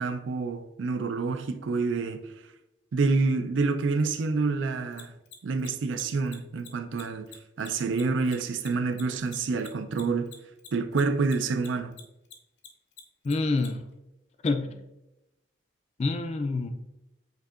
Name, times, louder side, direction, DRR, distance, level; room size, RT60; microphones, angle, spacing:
voice 1, 0.0-2.3 2.9-5.1 5.4-7.3 7.6-10.3 10.7-12.0, right 4 dB, 90° right, 0.4 m, -27 dB
Mechanisms, 4.9-11.7 11.9-13.7, left 9 dB, 70° left, 0.7 m, -46 dB
voice 2, 13.2-13.8 14.4-14.8 16.0-16.7, left 3 dB, 35° left, 0.3 m, -27 dB
8.0 x 2.7 x 2.4 m
head